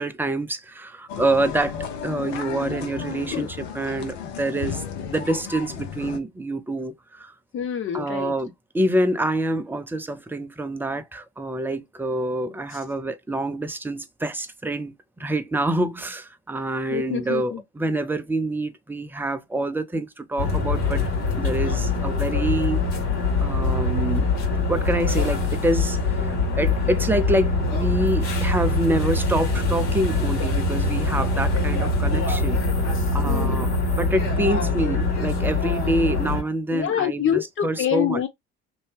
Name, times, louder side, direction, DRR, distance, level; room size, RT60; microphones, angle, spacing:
voice 1, 0.0-7.3 7.9-21.0 21.4-22.8 23.4-24.3 24.7-32.6 33.1-33.7 34.0-38.2, right 1 dB, 5° right, 0.4 m, -26 dB
sound 1, 1.1-6.2, left 7 dB, 70° left, 0.7 m, -33 dB
voice 2, 7.5-8.3 12.7-12.8 16.9-17.6 32.9-33.7 36.7-38.3, left 9 dB, 35° left, 0.8 m, -26 dB
sound 2, 20.4-36.4, left 3 dB, 50° left, 1.3 m, -23 dB
2.7 x 2.2 x 3.2 m
hypercardioid pair, 65°, 34 cm